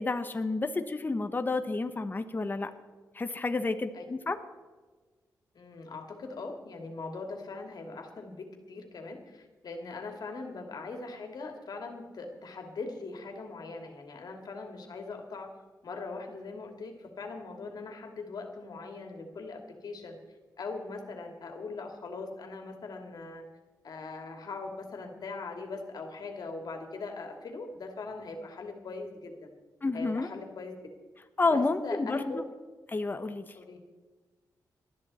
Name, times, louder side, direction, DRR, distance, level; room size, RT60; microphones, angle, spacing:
voice 1, 0.0-2.7 3.1-4.4 29.8-30.3 31.4-32.4 32.9-33.4, left 3 dB, 25° left, 8 dB, 1.1 m, -30 dB
voice 2, 5.5-15.5 15.8-20.2 20.6-23.4 23.8-29.5 29.9-30.7 31.4-32.4 33.5-33.8, left 3 dB, 65° left, 3 dB, 2.7 m, -41 dB
20.0 x 13.0 x 4.3 m, 1.3 s
wide cardioid pair, 105°, 7 cm